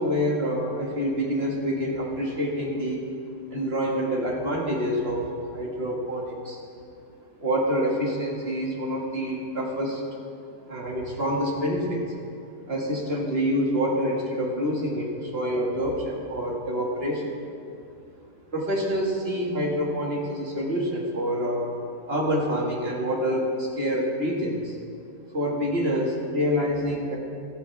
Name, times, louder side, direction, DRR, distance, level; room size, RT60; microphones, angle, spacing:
voice 1, 0.0-3.1 3.5-6.6 7.4-10.0 10.7-12.0 12.7-17.4 18.5-21.7 22.1-24.8 25.3-27.2, equal, 35° right, -2 dB, 2.3 m, -27 dB
26.5 x 8.9 x 3.5 m, 2.5 s
omnidirectional pair, 1.8 m